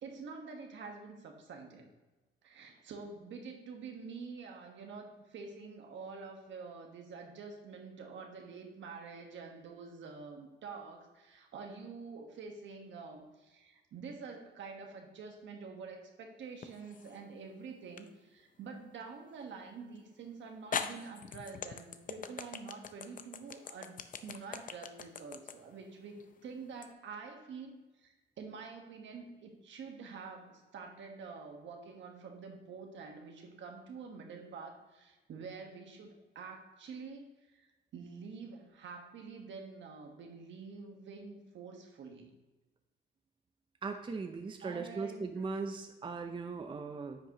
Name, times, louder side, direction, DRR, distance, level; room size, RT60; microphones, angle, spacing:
voice 1, 0.0-1.9 2.4-37.7 37.9-42.3 44.6-45.4, right 5 dB, 70° right, 3 dB, 1.5 m, -47 dB
sound 1, 16.6-17.2 18.0-18.1 20.0-20.1 20.7-26.9, left 6 dB, 45° left, 0.6 m, -41 dB
voice 2, 43.8-47.2, right 4 dB, 25° right, 6 dB, 0.6 m, -39 dB
9.9 x 6.0 x 3.0 m, 1.1 s
cardioid pair, 90°, 20 cm